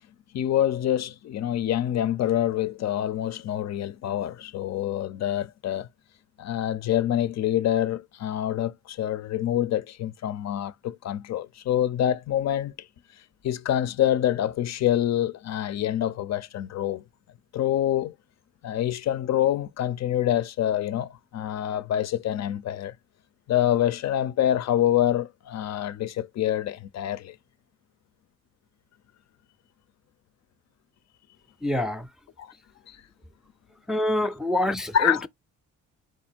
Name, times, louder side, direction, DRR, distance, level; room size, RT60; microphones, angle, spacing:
voice 1, 0.3-5.9 6.4-12.7 13.4-17.0 17.5-18.1 18.6-22.9 23.5-27.4 32.4-32.5 32.9-33.0 34.9-35.3, left 11 dB, 60° left, 0.6 m, -26 dB
voice 2, 31.6-32.1 33.9-35.3, left 1 dB, ahead, 0.5 m, -26 dB
4.7 x 2.4 x 4.3 m
cardioid pair, 90°, 30 cm